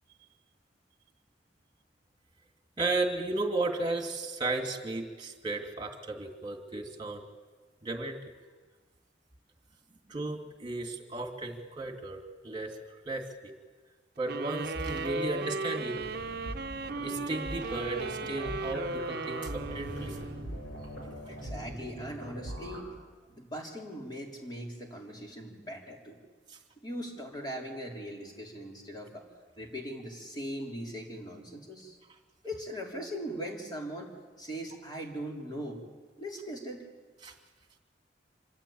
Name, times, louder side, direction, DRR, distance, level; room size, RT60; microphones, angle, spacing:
voice 1, 2.8-7.2 7.8-8.2 10.1-12.7 13.1-13.5 14.2-16.0 17.0-20.2 26.5-26.6 37.2-37.3, right 2 dB, 25° right, 4 dB, 2.6 m, -34 dB
sound 1, 14.3-20.7, right 3 dB, 60° right, 0.8 m, -36 dB
sound 2, 15.9-22.8, equal, 90° left, 7.5 m, -42 dB
voice 2, 21.3-22.9 23.3-26.2 26.8-29.3 29.6-32.0 32.4-35.8 36.2-36.8, equal, 25° left, -1 dB, 3.6 m, -40 dB
26.0 x 13.5 x 8.8 m, 1.4 s
head